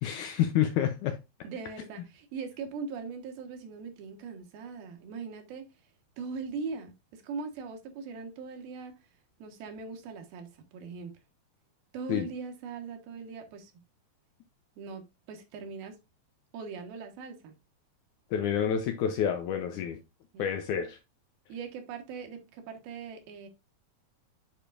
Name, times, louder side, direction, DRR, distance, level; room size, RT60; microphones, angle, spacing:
voice 1, 0.0-1.2 12.1-12.3 18.3-20.0 20.4-21.0, left 9 dB, 75° left, 1.8 m, -28 dB
voice 2, 1.4-5.7 6.2-8.9 9.4-11.1 11.9-13.7 14.8-16.0 16.5-17.5 20.3-20.5 21.5-23.5, right 5 dB, 85° right, 3.2 m, -40 dB
10.0 x 5.1 x 2.5 m
omnidirectional pair, 4.2 m